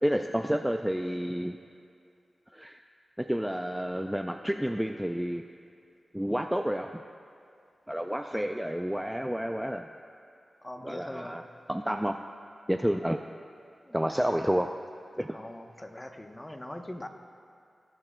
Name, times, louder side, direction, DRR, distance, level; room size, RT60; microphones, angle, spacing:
voice 1, 0.0-1.6 2.5-2.8 3.2-5.4 6.1-7.0 7.9-9.9 10.8-11.4 11.7-12.2 12.7-13.2 13.9-14.8 15.2-15.4, equal, 5° right, 5 dB, 0.3 m, -30 dB
voice 2, 10.6-11.4 13.9-14.4 15.3-17.1, left 1 dB, 20° left, 5 dB, 0.8 m, -42 dB
19.0 x 7.3 x 2.2 m, 2.4 s
cardioid pair, 45°, 0 cm